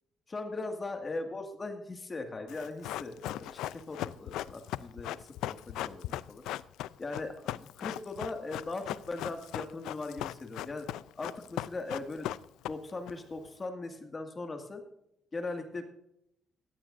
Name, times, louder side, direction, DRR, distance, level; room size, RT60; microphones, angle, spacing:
voice 1, 0.3-6.0 6.3-6.4 7.0-10.9 11.2-12.3 12.7-14.8 15.3-15.9, left 3 dB, 30° left, 5 dB, 1.9 m, -39 dB
Run, 2.5-13.1 13.4-13.5, left 13 dB, 90° left, 0.3 m, -38 dB
17.0 x 13.0 x 2.6 m, 0.79 s
cardioid pair, 95°, 0 cm